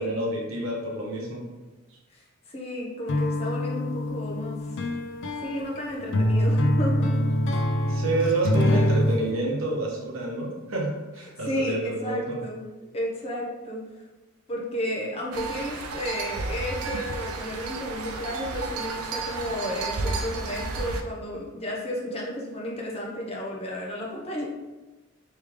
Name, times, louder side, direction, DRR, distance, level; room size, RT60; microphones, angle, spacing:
voice 1, 0.0-1.5 7.9-12.4, right 2 dB, 65° right, -1 dB, 0.9 m, -28 dB
voice 2, 2.1-4.8 5.4-7.2 11.4-12.7 12.9-13.8 14.5-24.4, equal, 30° left, -3 dB, 0.8 m, -32 dB
sound 1, 3.1-9.2, left 1 dB, 60° left, 0.4 m, -24 dB
sound 2, 15.3-21.0, right 3 dB, 90° right, 0.4 m, -32 dB
3.2 x 3.1 x 3.5 m, 1.1 s
head